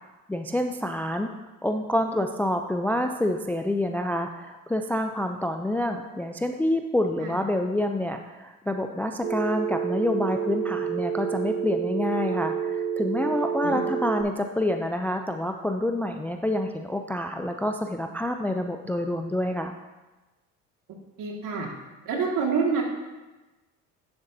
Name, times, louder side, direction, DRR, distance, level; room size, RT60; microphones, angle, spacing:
voice 1, 0.3-1.3 1.6-19.8, left 1 dB, 5° left, 6 dB, 0.4 m, -27 dB
Telephone, 9.2-14.2, right 7 dB, 35° right, 0.9 m, -29 dB
voice 2, 21.2-21.7 22.1-22.8, right 5 dB, 55° right, 0 dB, 2.1 m, -27 dB
10.0 x 7.0 x 2.7 m, 1.1 s
hypercardioid pair, 75°, 37 cm